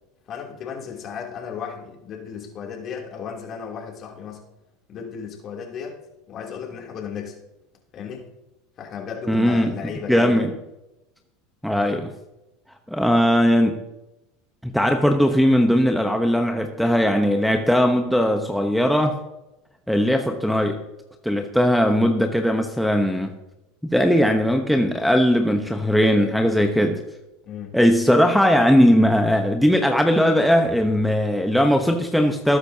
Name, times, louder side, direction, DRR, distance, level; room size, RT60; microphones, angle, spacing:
voice 1, 0.3-4.4 4.9-6.0 6.3-7.4 7.9-8.3 8.8-10.5 27.4-27.8, left 7 dB, 45° left, 0 dB, 2.9 m, -34 dB
voice 2, 9.3-10.5 11.6-12.1 12.9-13.7 14.6-19.1 19.9-20.8 21.2-23.4 23.8-27.0 27.7-32.6, equal, ahead, 3 dB, 1.0 m, -19 dB
19.5 x 9.7 x 2.8 m, 0.96 s
supercardioid pair, 105°, 0 cm